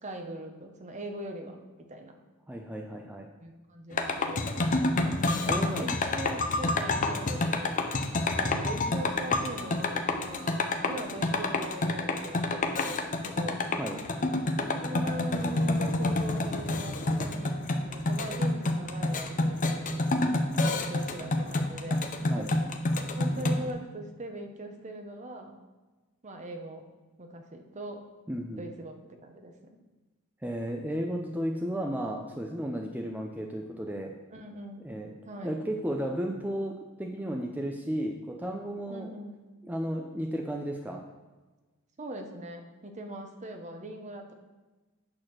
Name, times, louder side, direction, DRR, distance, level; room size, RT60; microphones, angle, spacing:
voice 1, 0.0-1.6 1.9-2.1 3.4-4.6 5.5-7.8 8.4-13.7 14.8-17.6 17.8-20.1 20.6-22.5 23.2-25.6 26.2-26.9 27.2-28.0 28.6-29.8 34.3-34.8 35.2-35.6 38.9-39.4 42.0-44.3, right 1 dB, 35° right, 4 dB, 0.9 m, -41 dB
voice 2, 2.5-3.3 5.0-5.1 5.5-6.0 13.8-14.0 22.3-22.5 28.3-28.7 30.4-34.1 34.8-35.1 35.4-39.1 39.6-41.0, equal, 10° right, 1 dB, 0.5 m, -34 dB
sound 1, 3.9-23.7, left 2 dB, 40° left, 0.6 m, -28 dB
8.7 x 4.2 x 6.3 m, 1.2 s
head